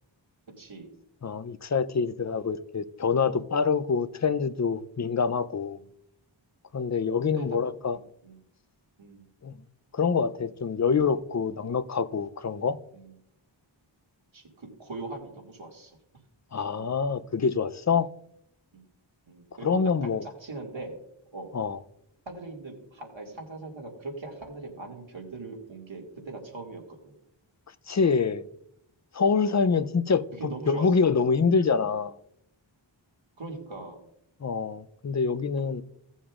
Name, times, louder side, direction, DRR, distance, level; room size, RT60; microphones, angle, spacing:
voice 1, 0.6-0.9 7.4-7.6 7.9-8.4 9.0-9.3 12.9-13.1 14.3-16.0 18.7-18.8 19.3-21.0 21.3-21.5 22.3-27.1 29.6-29.8 30.4-31.1 31.8-31.9 33.4-34.0 35.6-35.7, right 2 dB, 70° right, 2.2 m, -40 dB
voice 2, 1.2-5.8 6.7-8.0 9.4-9.6 9.9-12.8 16.5-18.1 19.6-20.2 21.5-21.8 27.9-28.4 29.1-30.2 30.7-32.1 34.4-35.8, left 5 dB, 35° left, 0.5 m, -26 dB
16.5 x 7.2 x 2.5 m
wide cardioid pair, 55°, 47 cm